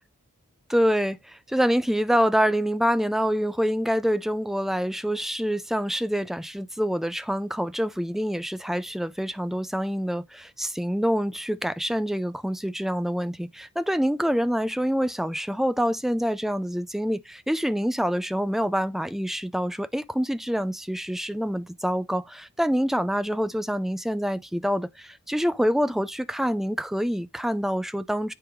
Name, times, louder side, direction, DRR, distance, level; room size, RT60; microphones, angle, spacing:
voice 1, 0.7-28.3, equal, ahead, 0.4 m, -26 dB
8.6 x 5.1 x 3.1 m
head